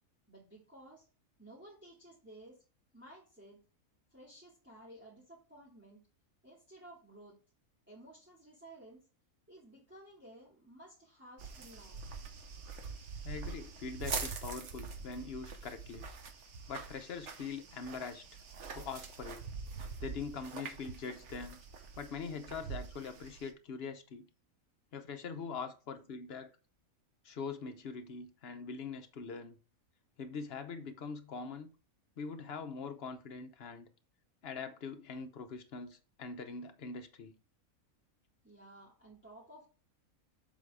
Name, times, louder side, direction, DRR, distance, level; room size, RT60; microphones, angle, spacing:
voice 1, 0.3-1.1 1.4-2.6 2.9-3.6 4.1-6.0 6.4-7.4 7.9-9.0 9.5-12.0 38.4-39.7, right 1 dB, 5° right, 2.4 m, -55 dB
sound 1, 11.4-23.5, right 5 dB, 60° right, 1.2 m, -44 dB
voice 2, 13.2-16.1 16.7-18.3 18.7-19.5 20.0-21.6 22.0-24.3 24.9-26.5 27.2-29.6 30.2-31.7 32.2-33.9 34.4-37.3, left 5 dB, 50° left, 0.9 m, -43 dB
7.4 x 3.6 x 4.8 m
omnidirectional pair, 1.5 m